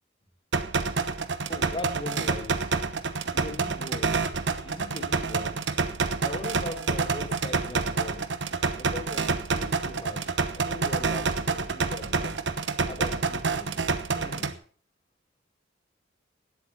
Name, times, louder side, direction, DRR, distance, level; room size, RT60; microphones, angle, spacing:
sound 1, 0.5-14.5, right 4 dB, 75° right, 1.1 m, -28 dB
voice 1, 1.5-2.7 3.3-4.4 4.6-5.7 6.2-8.3 8.7-12.4 12.9-13.8 14.1-14.6, left 2 dB, 30° left, 4 dB, 3.5 m, -40 dB
18.0 x 8.4 x 5.8 m, 0.43 s
head